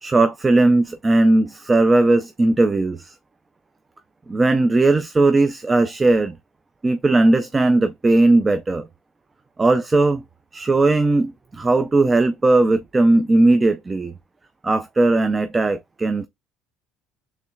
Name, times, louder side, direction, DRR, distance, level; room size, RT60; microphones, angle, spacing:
voice 1, 0.0-3.1 4.3-6.3 6.8-8.9 9.6-10.2 10.5-14.1 14.6-16.3, right 2 dB, 20° right, 0.4 m, -18 dB
6.8 x 3.2 x 2.3 m
cardioid pair, 110°, 0 cm